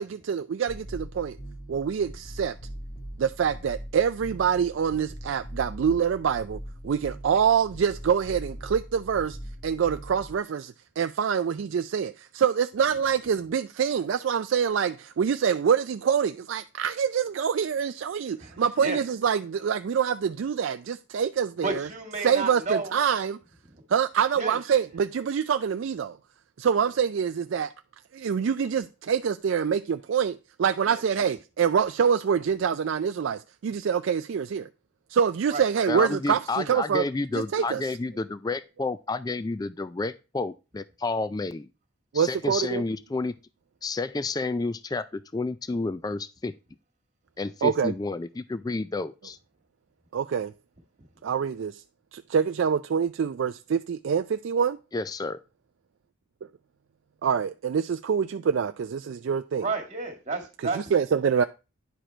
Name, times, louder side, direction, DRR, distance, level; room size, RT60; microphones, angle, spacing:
voice 1, 0.0-1.4 1.7-2.5 3.2-9.4 9.6-21.9 22.2-23.4 23.9-26.2 26.6-27.7 28.1-34.7 35.1-37.0 37.5-37.8 42.1-42.8 47.6-47.9 50.1-50.5 51.2-51.8 52.1-54.8 57.2-59.7 60.7-61.4, right 7 dB, 65° right, 0.3 m, -25 dB
sound 1, 0.7-10.4, equal, 40° left, 1.5 m, -41 dB
voice 2, 18.4-19.0 21.6-22.9 23.7-23.8 24.4-24.6 30.9-31.1 35.5-35.6 59.6-60.9, right 3 dB, 35° right, 1.9 m, -32 dB
voice 3, 35.9-41.7 42.1-43.3 43.8-46.5 47.4-49.4 54.9-55.4, left 3 dB, 20° left, 0.3 m, -30 dB
10.0 x 4.9 x 4.4 m
head